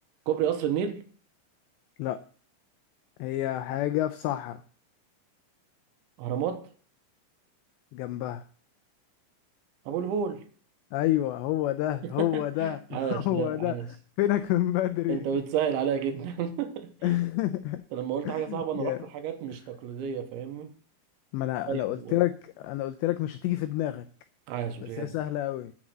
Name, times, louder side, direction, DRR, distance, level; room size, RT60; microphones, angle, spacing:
voice 1, 0.3-1.1 6.2-6.7 9.9-10.4 12.0-13.9 15.1-17.2 17.9-20.7 21.7-22.1 24.5-25.2, right 8 dB, 75° right, 3.2 m, -31 dB
voice 2, 3.2-4.6 7.9-8.4 10.9-13.8 14.2-15.2 17.0-17.8 18.2-19.0 21.3-24.1 24.8-25.7, left 14 dB, 90° left, 2.5 m, -28 dB
10.5 x 8.0 x 6.2 m
omnidirectional pair, 5.8 m